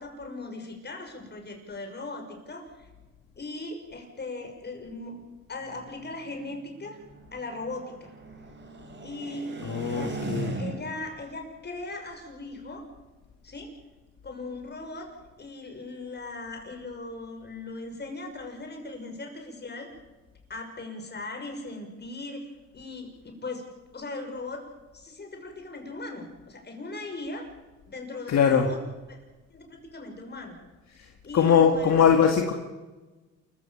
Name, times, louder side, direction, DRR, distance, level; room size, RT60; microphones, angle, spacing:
voice 1, 0.0-2.9 3.4-5.2 5.5-7.0 7.3-8.1 9.0-9.5 9.9-10.2 10.6-12.9 13.4-13.7 14.2-15.1 15.4-19.9 20.5-23.6 23.9-24.6 24.9-27.5 27.9-28.8 29.1-29.2 29.5-30.6 31.2-32.0, left 2 dB, 35° left, 4 dB, 6.4 m, -38 dB
sound 1, 5.6-11.1, right 3 dB, 35° right, 4.6 m, -38 dB
voice 2, 9.6-10.6 28.3-28.7 31.3-32.5, left 7 dB, 60° left, 3 dB, 2.2 m, -21 dB
28.0 x 15.5 x 7.3 m, 1.2 s
cardioid pair, 90°, 30 cm